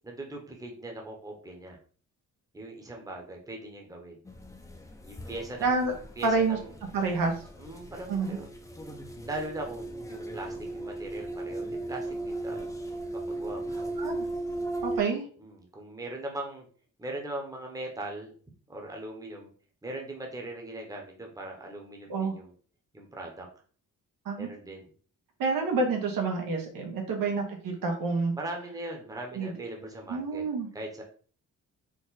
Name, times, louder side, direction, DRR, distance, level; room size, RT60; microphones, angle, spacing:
voice 1, 0.0-1.8 2.5-4.2 5.0-6.8 7.6-8.5 9.2-12.7 13.1-13.7 15.4-16.7 17.0-18.3 18.7-19.5 19.8-22.5 22.9-23.5 24.4-24.9 27.1-27.2 28.3-30.5 30.7-31.0, right 1 dB, 10° right, 1 dB, 0.9 m, -40 dB
sound 1, 4.2-15.0, right 2 dB, 10° left, 0.5 m, -37 dB
voice 2, 5.6-5.9 6.2-6.6 6.9-7.3 8.1-8.4 14.0-14.3 14.8-15.2 22.1-22.3 24.2-24.5 25.4-28.3 29.3-29.6 30.1-30.7, right 4 dB, 90° right, 2 dB, 1.3 m, -28 dB
4.6 x 2.5 x 4.0 m, 0.43 s
wide cardioid pair, 140°, 33 cm